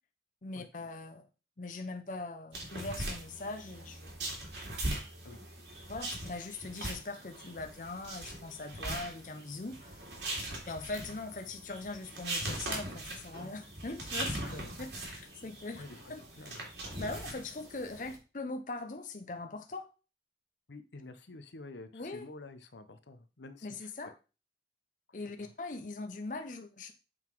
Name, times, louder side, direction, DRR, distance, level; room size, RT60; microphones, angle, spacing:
voice 1, 0.4-1.3 1.6-4.1 5.9-10.1 10.7-14.4 14.8-15.8 16.1-16.2 17.0-19.9 21.9-22.3 23.6-24.1 25.1-26.9, left 3 dB, 45° left, 5 dB, 0.7 m, -41 dB
sound 1, 2.5-18.2, right 1 dB, 80° right, 2.6 m, -41 dB
voice 2, 14.4-15.3 15.8-16.7 20.7-24.1 25.4-25.5, left 2 dB, 80° left, 9 dB, 0.8 m, -49 dB
7.9 x 3.8 x 4.6 m, 0.32 s
head